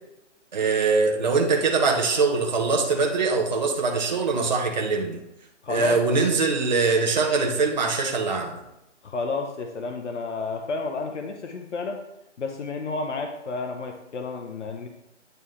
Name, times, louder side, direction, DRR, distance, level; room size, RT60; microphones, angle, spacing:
voice 1, 0.5-5.2 5.7-8.6, right 4 dB, 35° right, 1 dB, 0.8 m, -23 dB
voice 2, 5.6-6.2 9.0-12.0 12.4-14.9, left 3 dB, 70° left, 3 dB, 0.8 m, -31 dB
9.0 x 3.6 x 3.2 m, 0.89 s
hypercardioid pair, 170°, 37 cm